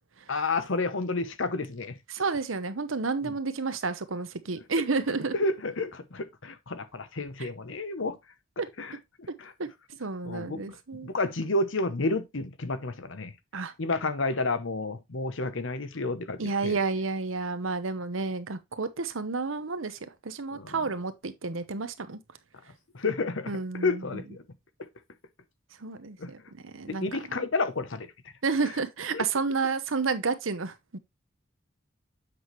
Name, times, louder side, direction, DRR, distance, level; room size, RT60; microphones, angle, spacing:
voice 1, 0.3-2.0 3.2-3.3 5.3-8.2 8.8-9.5 10.2-13.3 13.8-16.8 20.5-20.8 22.9-23.5 23.8-24.4 24.8-24.9 26.2-26.3 26.9-28.1 28.6-28.7 29.1-29.2, left 3 dB, 75° left, 0.9 m, -31 dB
voice 2, 2.1-5.3 8.6-8.7 9.6-9.7 10.0-11.1 13.5-13.7 16.4-22.2 23.5-24.2 25.8-26.4 26.6-27.5 28.4-31.0, right 4 dB, 80° right, 1.0 m, -31 dB
7.8 x 6.0 x 3.1 m
head